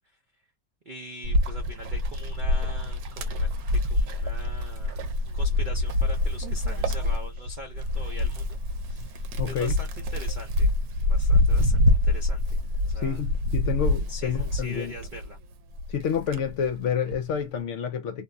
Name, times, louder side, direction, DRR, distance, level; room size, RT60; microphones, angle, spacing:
voice 1, 0.9-8.6 8.8-10.7 11.1-12.6 12.8-13.2 14.1-15.4, right 1 dB, 65° right, 0.5 m, -43 dB
Wind, 1.2-15.3 15.8-17.3, left 2 dB, 90° right, 1.1 m, -26 dB
voice 2, 9.4-9.7 13.0-14.9 15.9-18.2, left 7 dB, 65° left, 0.8 m, -28 dB
2.7 x 2.0 x 2.4 m
omnidirectional pair, 1.5 m